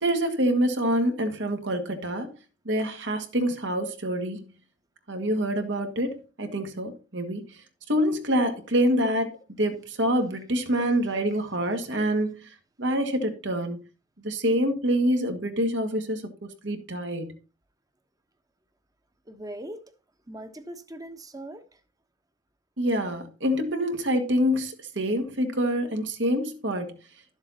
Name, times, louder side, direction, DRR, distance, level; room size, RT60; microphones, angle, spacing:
voice 1, 0.0-2.3 2.7-4.5 5.1-7.5 7.9-12.4 12.8-13.8 14.2-16.2 16.6-17.3 22.8-26.9, equal, 70° right, 1.9 m, -26 dB
voice 2, 19.3-19.9 20.3-21.6, right 1 dB, 20° right, 1.1 m, -40 dB
12.0 x 7.3 x 4.1 m
head